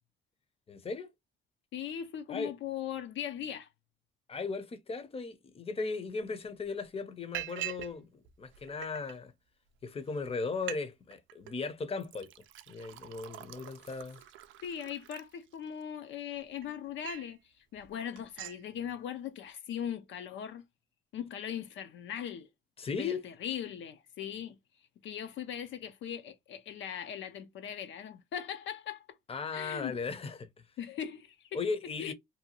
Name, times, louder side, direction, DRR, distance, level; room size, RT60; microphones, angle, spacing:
voice 1, 0.7-1.1 2.3-2.5 4.3-9.3 9.8-12.3 12.7-14.2 22.8-23.2 29.3-30.5 31.5-32.1, left 4 dB, 30° left, 0.6 m, -37 dB
voice 2, 1.7-3.7 14.6-20.7 21.1-22.5 23.0-24.6 25.0-29.1 29.5-30.0 30.8-31.6 32.0-32.1, left 9 dB, 70° left, 0.5 m, -39 dB
Liquid, 6.2-6.3 6.6-6.9 7.3-7.9 8.2-9.1 9.8-9.9 10.2-10.3 10.5-10.8 11.1-11.5 12.0-15.8 16.3-17.3 17.7-17.9 18.2-18.6, right 13 dB, 80° right, 0.4 m, -44 dB
2.7 x 2.2 x 2.7 m
cardioid pair, 90°, 20 cm